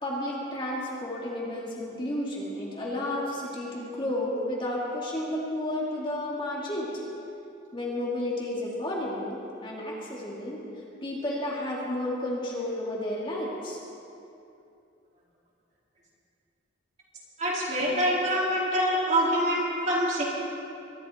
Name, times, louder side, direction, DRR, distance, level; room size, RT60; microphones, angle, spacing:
voice 1, 0.0-7.0 7.7-10.6 11.0-13.8, left 1 dB, 25° left, -4 dB, 2.4 m, -32 dB
voice 2, 17.4-20.2, equal, 40° right, -5 dB, 3.6 m, -25 dB
22.5 x 12.0 x 4.5 m, 2.6 s
head